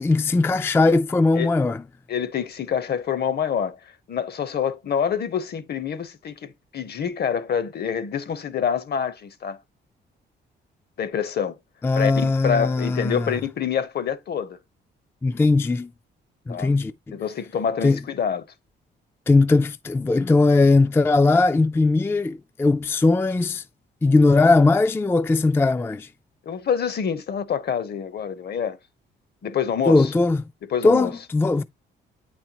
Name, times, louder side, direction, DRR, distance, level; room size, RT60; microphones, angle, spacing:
voice 1, 0.0-1.8 11.8-13.3 15.2-15.9 16.5-17.2 17.8-18.0 19.3-23.6 24.0-26.1 29.9-30.4 30.8-31.6, left 3 dB, 10° left, 0.3 m, -19 dB
voice 2, 2.1-3.8 4.1-9.6 11.0-11.6 11.9-14.6 16.5-16.7 17.1-18.4 26.5-28.8 29.4-30.1 30.7-31.1, left 7 dB, 55° left, 0.9 m, -26 dB
8.7 x 4.4 x 2.9 m
cardioid pair, 75°, 20 cm